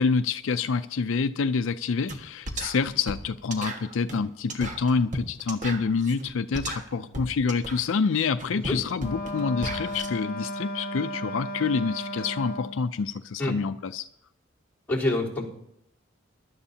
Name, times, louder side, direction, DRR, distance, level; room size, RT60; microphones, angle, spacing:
voice 1, 0.0-14.1, left 5 dB, 70° left, 11 dB, 0.4 m, -27 dB
sound 1, 2.1-2.2 2.5-10.1, right 1 dB, 40° right, 1.6 m, -36 dB
Wind instrument woodwind instrument, 9.0-12.9, left 1 dB, 45° left, 1.0 m, -34 dB
voice 2, 14.9-15.5, left 1 dB, 5° left, -8 dB, 3.7 m, -26 dB
22.5 x 12.0 x 2.8 m, 0.76 s
head